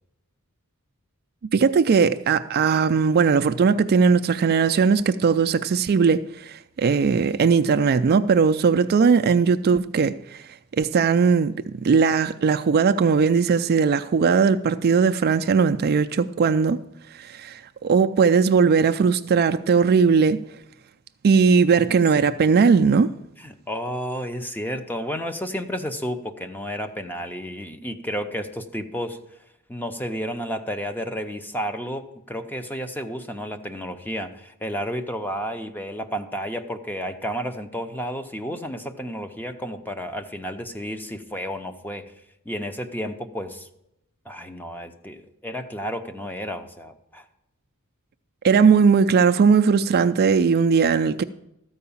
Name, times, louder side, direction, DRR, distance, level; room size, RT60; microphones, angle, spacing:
voice 1, 1.5-10.4 10.8-11.5 11.8-16.8 17.1-20.4 21.2-23.1 48.4-51.2, right 5 dB, 45° right, 0.3 m, -19 dB
voice 2, 23.4-29.2 29.7-42.0 42.5-43.7 44.3-47.3, equal, 10° left, 0.6 m, -31 dB
13.5 x 4.8 x 7.0 m
head